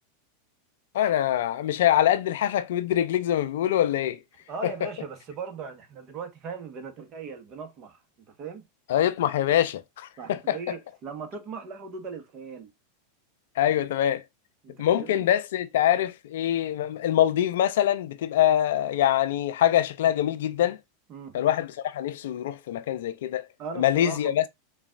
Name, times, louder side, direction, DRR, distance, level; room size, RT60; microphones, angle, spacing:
voice 1, 0.9-4.2 4.6-4.7 8.9-10.6 13.6-14.2 14.8-20.8 21.3-23.5 23.8-24.5, left 11 dB, 70° left, 0.4 m, -24 dB
voice 2, 4.5-8.6 10.2-12.7 14.6-15.3 21.1-21.4 23.6-24.4, right 5 dB, 40° right, 1.1 m, -39 dB
3.9 x 2.4 x 3.7 m
hypercardioid pair, 95°, 0 cm